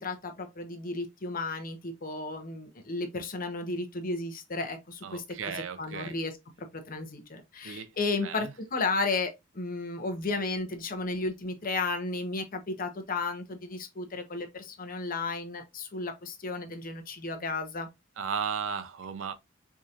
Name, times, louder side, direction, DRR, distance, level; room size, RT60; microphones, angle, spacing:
voice 1, 0.0-5.2 5.8-6.3 6.6-17.9, left 3 dB, 45° left, 0.9 m, -33 dB
voice 2, 5.0-6.2 7.6-7.9 8.2-8.5 18.2-19.3, right 6 dB, 75° right, 0.5 m, -35 dB
4.8 x 2.8 x 2.4 m
head